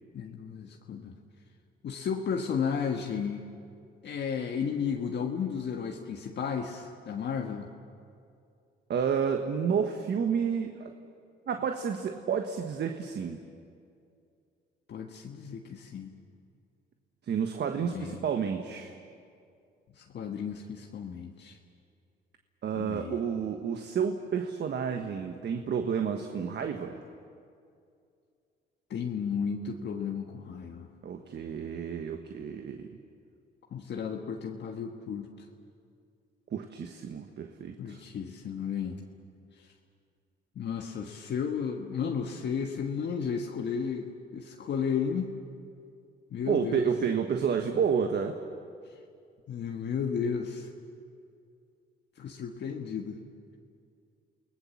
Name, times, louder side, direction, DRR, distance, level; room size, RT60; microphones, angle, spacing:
voice 1, 0.1-1.1 1.8-3.4 4.0-7.7 14.9-16.1 17.8-18.2 19.9-21.6 22.7-23.2 28.9-30.9 33.7-35.3 37.8-39.0 40.5-45.3 46.3-46.9 49.5-50.7 52.2-53.2, left 6 dB, 60° left, 1 dB, 1.5 m, -33 dB
voice 2, 8.9-10.9 11.5-13.4 17.3-18.9 22.6-27.0 31.0-32.9 36.5-38.0 46.5-48.4, right 7 dB, 60° right, 5 dB, 1.4 m, -30 dB
29.0 x 19.0 x 7.3 m, 2.4 s
cardioid pair, 90°, 20 cm